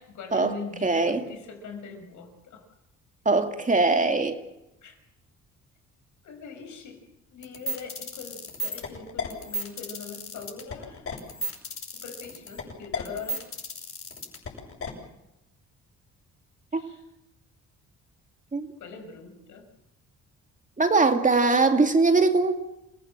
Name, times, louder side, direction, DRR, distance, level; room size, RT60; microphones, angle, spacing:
voice 1, 0.0-2.7 3.8-4.0 4.8-5.0 6.2-11.2 11.9-13.5 16.7-17.0 18.8-19.7, left 5 dB, 75° left, 5.9 m, -42 dB
voice 2, 0.8-1.2 3.2-4.4 16.7-16.8 18.5-18.7 20.8-22.5, right 3 dB, 25° right, 2.5 m, -21 dB
sound 1, 7.4-14.9, left 1 dB, 45° left, 7.6 m, -33 dB
28.0 x 16.5 x 7.6 m
cardioid pair, 90°, 30 cm